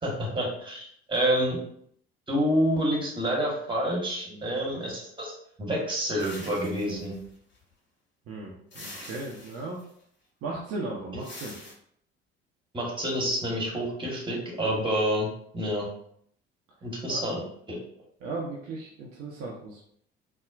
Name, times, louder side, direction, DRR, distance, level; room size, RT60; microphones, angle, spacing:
voice 1, 0.0-1.6 2.3-5.3 5.6-7.1 12.7-15.3 15.5-15.9 16.8-17.4 17.7-17.8, equal, 15° right, -3 dB, 1.4 m, -28 dB
sound 1, 6.2-7.6 8.7-9.9 11.2-11.7, left 1 dB, 35° left, 1.3 m, -45 dB
voice 2, 8.3-9.8 10.4-11.6 17.1-17.2 18.2-19.8, right 2 dB, 50° right, -3 dB, 0.7 m, -36 dB
4.1 x 2.1 x 2.5 m, 0.67 s
figure-of-eight pair, 55°, 31 cm